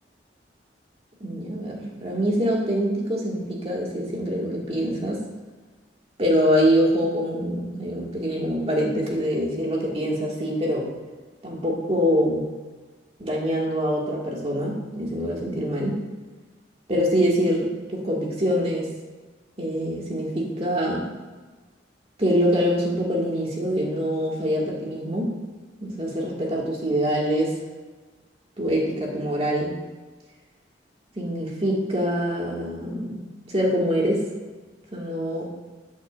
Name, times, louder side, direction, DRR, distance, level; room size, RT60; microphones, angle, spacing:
voice 1, 1.2-5.2 6.2-10.9 11.4-12.5 13.2-16.0 16.9-18.9 19.6-21.1 22.2-25.3 25.8-27.5 28.6-29.7 31.2-33.2 33.5-34.3 34.9-35.4, equal, 35° right, -3 dB, 2.2 m, -24 dB
12.0 x 8.4 x 2.6 m, 1.3 s
head